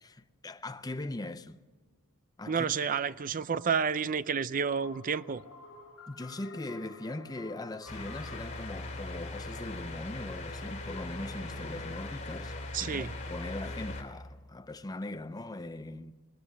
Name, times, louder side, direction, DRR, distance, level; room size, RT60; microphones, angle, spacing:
voice 1, 0.0-1.6 2.4-2.7 6.1-12.5 12.8-16.2, left 2 dB, 15° left, 0.6 m, -40 dB
voice 2, 2.5-5.4 12.7-13.1, right 6 dB, 40° right, 0.5 m, -30 dB
sound 1, 4.6-10.4, left 4 dB, 70° left, 3.0 m, -52 dB
sound 2, 7.9-14.0, left 2 dB, 35° left, 2.9 m, -40 dB
21.5 x 18.5 x 6.6 m
head